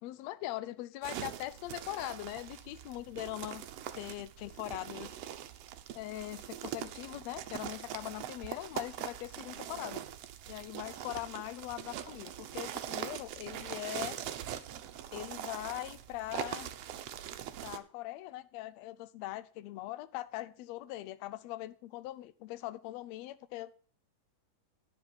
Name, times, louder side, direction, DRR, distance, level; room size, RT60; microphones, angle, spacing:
voice 1, 0.0-3.6 3.9-5.1 5.9-10.0 10.5-14.2 15.1-16.7 17.6-23.8, left 16 dB, 90° left, 15 dB, 1.5 m, -41 dB
sound 1, 1.0-17.8, right 11 dB, 75° right, 1.5 m, -42 dB
10.5 x 7.6 x 5.4 m, 0.43 s
omnidirectional pair, 3.7 m